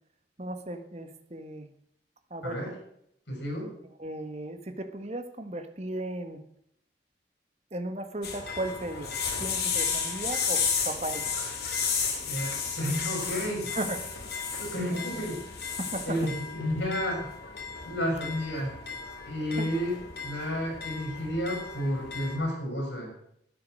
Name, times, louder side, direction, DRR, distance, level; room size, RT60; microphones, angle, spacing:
voice 1, 0.4-1.7 2.3-2.6 4.0-6.4 7.7-9.1 9.4-11.4 13.7-14.0 14.2-14.3 15.8-16.2 19.6-19.7, right 1 dB, 35° right, 8 dB, 1.3 m, -36 dB
voice 2, 3.3-3.7 12.3-13.8 14.6-15.4 16.1-17.3 17.8-18.7 19.2-19.9 20.2-23.1, equal, 80° left, 0 dB, 5.8 m, -31 dB
sound 1, 8.2-22.4, left 6 dB, 65° left, 2.9 m, -33 dB
12.0 x 9.6 x 6.4 m, 0.73 s
head